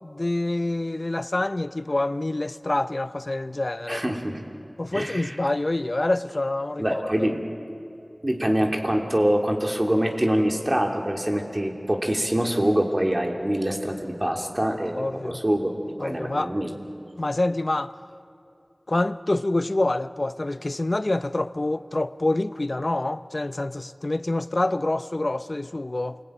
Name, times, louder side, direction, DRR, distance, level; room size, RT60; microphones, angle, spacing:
voice 1, 0.0-4.0 4.8-7.3 15.0-15.4 16.0-16.5 17.2-17.9 18.9-26.2, left 2 dB, 60° left, 13 dB, 0.6 m, -26 dB
voice 2, 3.9-4.4 4.9-5.3 6.8-7.4 8.2-15.7 16.0-16.7, right 1 dB, 35° right, 2 dB, 2.9 m, -25 dB
28.0 x 20.5 x 9.2 m, 2.6 s
wide cardioid pair, 45°, 0 cm